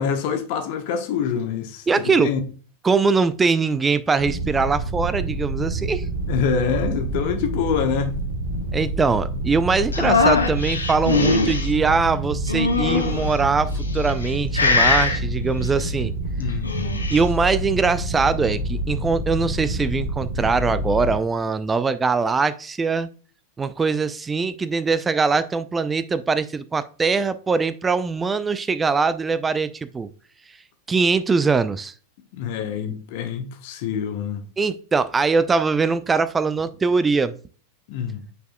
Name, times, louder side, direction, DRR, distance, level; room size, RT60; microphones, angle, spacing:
voice 1, 0.0-2.4 6.3-8.2 16.4-17.1 32.3-34.4 37.9-38.2, left 7 dB, 50° left, 1.1 m, -26 dB
voice 2, 1.9-2.3 2.8-6.0 8.7-16.1 17.1-23.1 23.6-30.1 30.9-31.9 34.6-37.4, right 4 dB, 15° right, 0.5 m, -22 dB
sound 1, 4.2-21.2, right 1 dB, 60° right, 1.3 m, -27 dB
sound 2, 9.9-11.7 12.5-13.3 14.0-14.3 14.5-15.2 16.5-17.2, left 4 dB, 75° left, 1.2 m, -21 dB
9.0 x 4.7 x 2.3 m
figure-of-eight pair, 90°, 0 cm